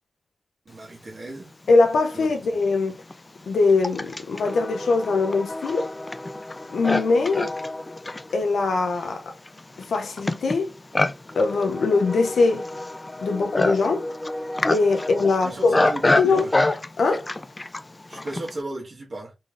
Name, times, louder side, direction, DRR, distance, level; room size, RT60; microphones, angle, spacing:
voice 1, 0.6-1.5 2.1-2.3 15.3-16.5 18.1-19.3, right 2 dB, 65° right, 1.4 m, -34 dB
voice 2, 1.7-3.0 3.5-5.9 6.7-7.5 8.3-9.3 9.8-10.7 11.4-12.7 13.2-14.1 14.7-15.8 16.0-16.4 17.0-17.3, left 3 dB, 85° left, 0.5 m, -21 dB
Livestock farm animals working animals, 1.8-1.9 2.7-18.6, left 2 dB, 35° left, 0.4 m, -28 dB
3.8 x 3.2 x 2.5 m
cardioid pair, 45°, 0 cm